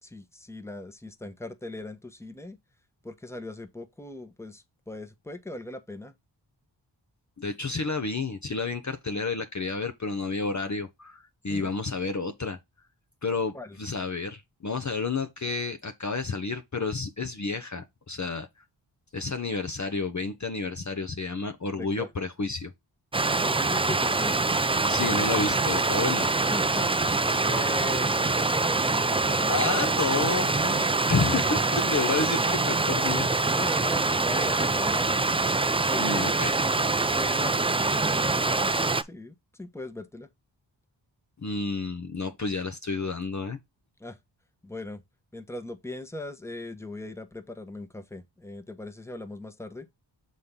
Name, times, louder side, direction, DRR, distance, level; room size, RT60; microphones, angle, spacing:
voice 1, 0.0-2.6 3.0-6.1 11.5-11.7 13.5-13.8 21.7-22.1 23.4-24.4 26.5-26.9 27.5-29.7 31.4-31.9 33.5-35.3 35.9-36.3 37.1-40.3 44.0-44.2 44.6-45.0 45.3-49.9, left 1 dB, 5° left, 1.1 m, -39 dB
voice 2, 7.4-12.6 13.2-18.5 19.1-22.7 24.9-26.3 29.4-33.3 36.0-36.5 41.4-43.6, left 4 dB, 35° left, 0.9 m, -30 dB
Stream, 23.1-39.0, right 3 dB, 15° right, 0.4 m, -25 dB
6.4 x 4.1 x 3.7 m
wide cardioid pair, 60°, 47 cm